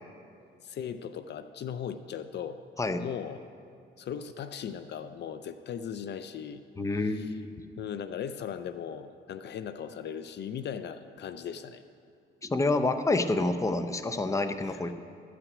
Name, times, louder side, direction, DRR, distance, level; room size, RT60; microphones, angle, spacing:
voice 1, 0.6-2.6 3.0-3.4 4.0-6.6 7.0-7.3 7.8-11.8 14.7-14.8, left 8 dB, 60° left, 11 dB, 0.5 m, -38 dB
voice 2, 6.8-7.5 12.4-14.9, left 2 dB, 15° left, 8 dB, 0.7 m, -28 dB
13.5 x 6.0 x 7.9 m, 2.3 s
cardioid pair, 90°, 20 cm